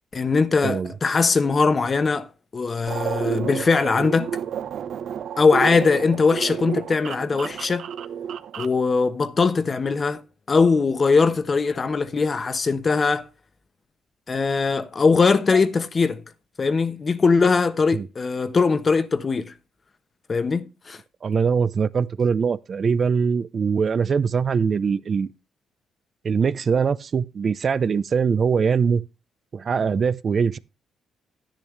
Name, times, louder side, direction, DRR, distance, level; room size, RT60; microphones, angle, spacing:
voice 1, 0.1-2.3 2.5-4.3 5.4-7.8 8.6-10.2 10.5-13.3 14.3-16.2 16.6-19.5 20.3-21.0, left 4 dB, 35° left, 1.0 m, -21 dB
sound 1, 2.9-8.8, right 8 dB, 70° right, 0.9 m, -31 dB
voice 2, 21.2-25.3 26.2-29.0 29.5-30.6, right 6 dB, 45° right, 0.6 m, -22 dB
10.5 x 10.5 x 3.3 m
cardioid pair, 90°, 0 cm